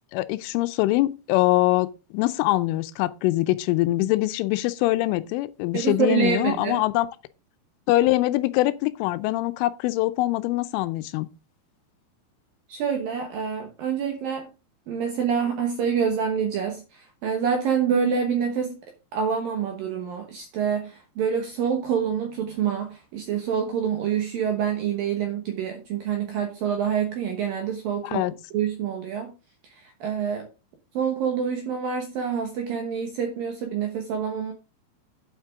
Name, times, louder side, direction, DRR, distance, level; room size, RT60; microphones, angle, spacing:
voice 1, 0.1-7.1 7.9-11.3 28.0-28.3, left 17 dB, 90° left, 3.1 m, -23 dB
voice 2, 5.7-6.8 12.7-14.5 14.9-18.8 19.1-28.2 28.5-29.3 29.7-30.5 30.9-34.5, right 7 dB, 70° right, 2.2 m, -26 dB
8.9 x 7.4 x 3.6 m
omnidirectional pair, 5.6 m